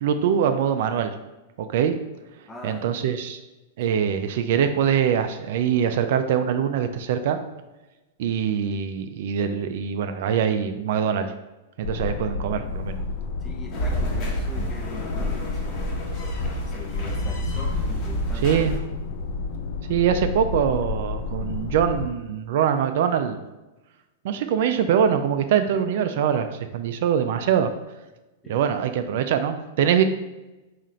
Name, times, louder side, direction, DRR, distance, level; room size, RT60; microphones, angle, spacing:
voice 1, 0.0-1.1 1.6-1.9 2.6-3.4 3.8-7.4 8.2-11.3 11.8-13.0 18.4-18.7 19.9-23.4 24.2-27.7 28.5-30.0, right 8 dB, 65° right, 8 dB, 0.3 m, -23 dB
voice 2, 2.5-2.8 3.9-4.0 13.4-16.0 16.7-18.6 28.4-28.7, left 1 dB, 15° left, 2 dB, 0.6 m, -42 dB
sound 1, 11.8-22.1, left 4 dB, 65° left, 0.4 m, -31 dB
sound 2, 13.7-18.8, right 1 dB, 35° left, 1.0 m, -29 dB
3.7 x 2.5 x 4.2 m, 1.1 s
hypercardioid pair, 130°, 0 cm